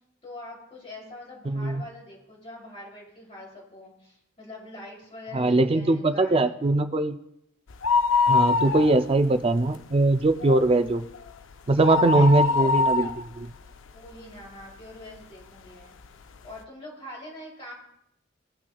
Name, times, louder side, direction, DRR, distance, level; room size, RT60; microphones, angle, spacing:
voice 1, 0.2-6.9 8.5-8.9 11.8-12.9 13.9-15.9 16.4-17.7, left 1 dB, 30° left, -3 dB, 3.0 m, -43 dB
voice 2, 1.5-1.8 5.3-7.2 8.3-11.0 11.7-13.5, right 2 dB, 30° right, 9 dB, 0.4 m, -21 dB
sound 1, 7.7-9.4 9.7-9.8 10.2-14.6 15.2-15.3 16.0-16.1 16.4-16.5, left 4 dB, 80° left, 0.6 m, -24 dB
17.0 x 5.8 x 2.3 m, 0.77 s
head